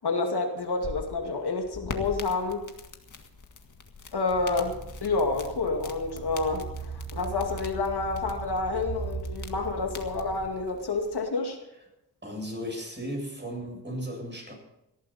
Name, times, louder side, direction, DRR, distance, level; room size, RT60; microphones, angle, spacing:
voice 1, 0.0-2.6 4.1-11.6, left 3 dB, 65° left, 3 dB, 2.4 m, -29 dB
sound 1, 0.6-11.2, left 4 dB, 45° left, 1.8 m, -44 dB
sound 2, 4.3-10.5, right 5 dB, 75° right, 3.3 m, -39 dB
voice 2, 12.2-14.5, equal, 25° right, 0 dB, 7.6 m, -35 dB
18.5 x 13.5 x 4.4 m, 0.87 s
cardioid pair, 80°, 41 cm